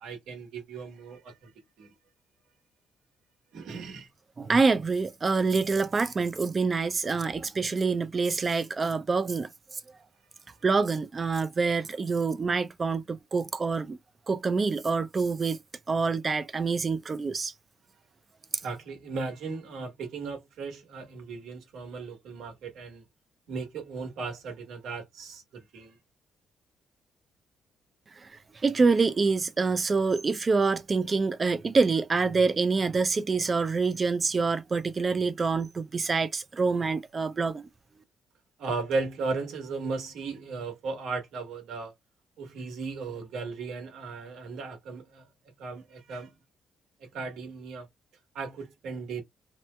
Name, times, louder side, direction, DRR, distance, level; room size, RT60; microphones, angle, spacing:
voice 1, 0.0-1.5 1.8-1.9 3.5-4.1 18.6-23.0 23.5-26.0 38.6-41.9 42.4-45.3 45.6-46.3 47.0-47.9 48.3-49.2, right 4 dB, 80° right, 1.3 m, -36 dB
voice 2, 4.4-9.8 10.6-14.0 14.3-15.6 15.9-17.5 28.2-28.3 28.6-37.7, right 4 dB, 30° right, 0.5 m, -26 dB
3.0 x 2.1 x 3.2 m
cardioid pair, 110°, 0 cm